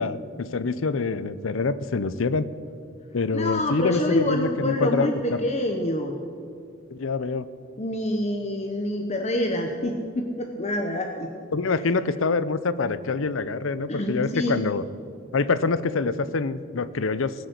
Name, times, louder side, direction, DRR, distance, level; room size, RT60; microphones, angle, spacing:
voice 1, 0.0-2.5 3.1-5.5 6.9-7.5 11.5-14.8 15.3-17.3, left 4 dB, 75° left, 15 dB, 0.6 m, -25 dB
voice 2, 3.3-6.2 7.8-11.3 13.9-14.6, left 1 dB, 35° left, 4 dB, 0.9 m, -27 dB
19.0 x 6.4 x 8.2 m, 2.3 s
head